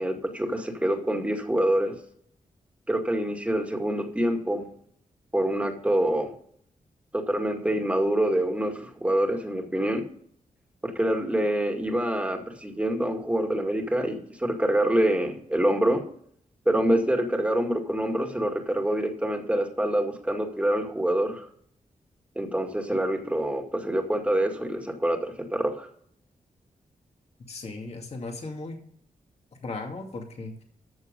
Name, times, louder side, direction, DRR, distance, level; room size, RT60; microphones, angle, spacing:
voice 1, 0.0-1.9 2.9-4.6 5.3-6.3 7.1-10.0 10.8-16.0 16.7-21.5 22.4-25.9, right 1 dB, 10° right, 3 dB, 2.1 m, -26 dB
voice 2, 27.5-28.8 29.6-30.6, left 3 dB, 50° left, 2 dB, 2.3 m, -36 dB
14.0 x 7.0 x 5.3 m, 0.63 s
wide cardioid pair, 120°, 14 cm